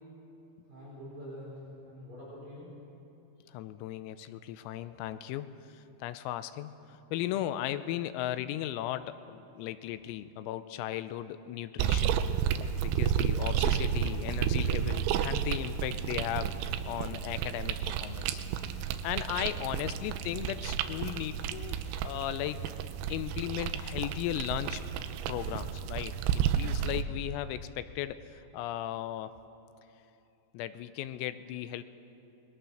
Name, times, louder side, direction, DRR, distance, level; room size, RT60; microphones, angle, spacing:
voice 1, 0.7-1.5 1.8-2.7 13.1-13.3, equal, 40° right, -7 dB, 5.9 m, -46 dB
voice 2, 3.5-5.6 6.0-12.1 12.8-18.4 19.0-22.6 23.1-24.8 25.3-26.2 26.6-28.2 28.5-29.3 30.5-31.8, left 13 dB, 90° left, 12 dB, 3.5 m, -36 dB
sound 1, 11.8-27.0, right 9 dB, 90° right, 3.6 m, -31 dB
27.5 x 21.0 x 6.5 m, 2.8 s
omnidirectional pair, 6.0 m